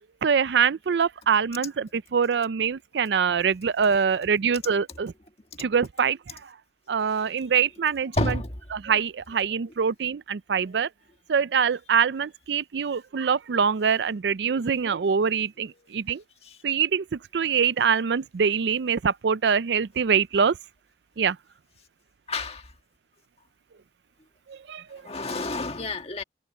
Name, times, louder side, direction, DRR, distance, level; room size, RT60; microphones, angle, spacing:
voice 1, 0.2-5.1 5.6-6.2 6.9-8.4 8.7-10.9 11.3-16.2 16.6-17.0 17.3-20.5 21.2-21.4 24.7-24.8, right 6 dB, 75° right, 0.4 m, -24 dB
voice 2, 8.1-8.6 16.4-16.6 22.3-22.7 25.0-26.2, left 2 dB, 35° left, 1.6 m, -29 dB
open air
head